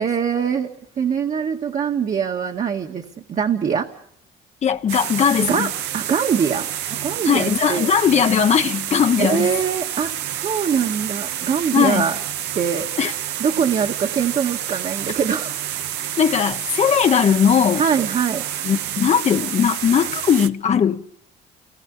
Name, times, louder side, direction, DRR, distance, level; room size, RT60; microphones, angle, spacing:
voice 1, 0.0-3.9 5.5-7.9 9.2-10.1 10.4-12.2 12.5-12.9 13.4-15.5 17.7-18.5, right 7 dB, 45° right, 1.8 m, -23 dB
voice 2, 4.6-5.7 7.3-9.5 11.7-12.1 13.0-13.1 16.2-17.8 18.6-21.0, left 7 dB, 40° left, 1.1 m, -18 dB
sound 1, 4.9-20.5, right 11 dB, 85° right, 1.3 m, -29 dB
29.0 x 19.5 x 7.2 m
cardioid pair, 110°, 17 cm